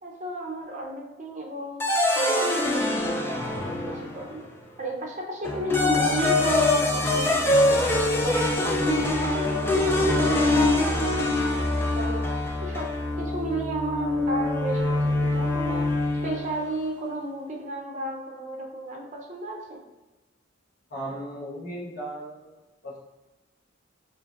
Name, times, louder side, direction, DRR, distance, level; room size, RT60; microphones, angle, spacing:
voice 1, 0.0-1.8 2.2-4.5 4.8-12.2 12.6-15.9 16.2-19.8, right 1 dB, 40° right, -1 dB, 0.6 m, -34 dB
sound 1, 1.8-4.4 5.4-16.6, left 2 dB, 10° left, 0.3 m, -24 dB
voice 2, 20.9-22.6 22.8-23.0, right 1 dB, 55° left, -5 dB, 1.1 m, -36 dB
4.8 x 2.6 x 2.4 m, 1.1 s
head